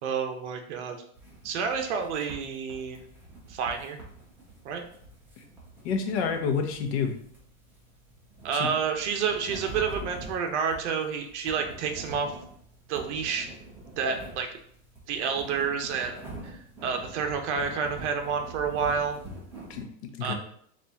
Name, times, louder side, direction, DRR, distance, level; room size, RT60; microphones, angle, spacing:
voice 1, 0.0-1.0 1.4-3.0 3.5-4.0 4.6-4.9 8.4-12.3 12.9-13.5 14.0-14.5 15.1-16.2 16.4-19.2 20.2-20.3, right 6 dB, 55° right, 5 dB, 0.8 m, -29 dB
sound 1, 1.1-19.8, right 1 dB, 5° right, 0.3 m, -45 dB
voice 2, 5.8-7.1 8.5-8.7 19.7-19.9 20.2-20.3, left 6 dB, 50° left, 4 dB, 0.8 m, -28 dB
4.1 x 2.5 x 3.4 m, 0.63 s
hypercardioid pair, 140°, 42 cm